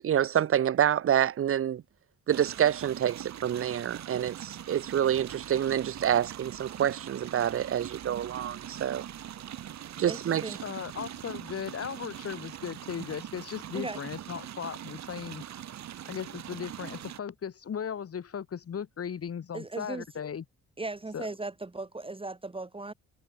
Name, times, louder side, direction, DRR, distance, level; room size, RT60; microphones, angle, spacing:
voice 1, 0.0-1.8 2.3-9.0 10.0-10.6, right 10 dB, 45° right, 0.8 m, -27 dB
sound 1, 2.3-17.2, right 10 dB, 65° right, 2.5 m, -42 dB
voice 2, 10.1-10.6 13.7-14.0 19.5-20.0 20.8-22.9, right 2 dB, 20° right, 2.8 m, -37 dB
voice 3, 10.6-15.4 16.0-20.4 21.1-21.3, left 7 dB, 50° left, 4.7 m, -37 dB
cardioid pair, 90°, 30 cm